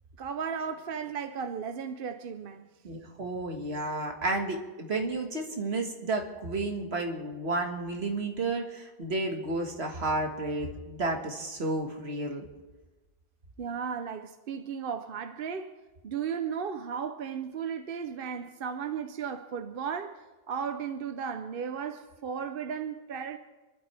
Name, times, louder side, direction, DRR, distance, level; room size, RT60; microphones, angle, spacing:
voice 1, 0.2-2.7 13.6-15.7 16.0-23.4, right 7 dB, 60° right, 0.9 m, -35 dB
voice 2, 2.8-12.5, right 2 dB, 80° right, 1.9 m, -32 dB
28.5 x 12.0 x 3.4 m
omnidirectional pair, 1.1 m